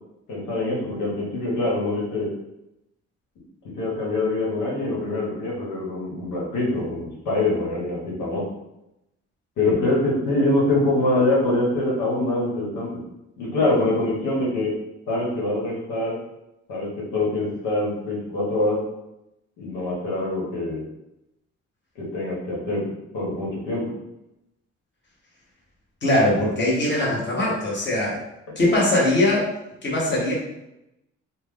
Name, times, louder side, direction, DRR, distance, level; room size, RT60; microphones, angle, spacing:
voice 1, 0.3-2.3 3.8-8.4 9.6-13.0 13.4-14.7 15.1-16.1 16.7-18.8 19.6-20.8 22.0-23.8, left 2 dB, 90° left, -4 dB, 1.1 m, -24 dB
voice 2, 26.0-28.2 28.6-29.5 29.8-30.3, left 1 dB, 35° left, -5 dB, 1.3 m, -21 dB
3.0 x 2.2 x 3.6 m, 0.87 s
cardioid pair, 90°, 30 cm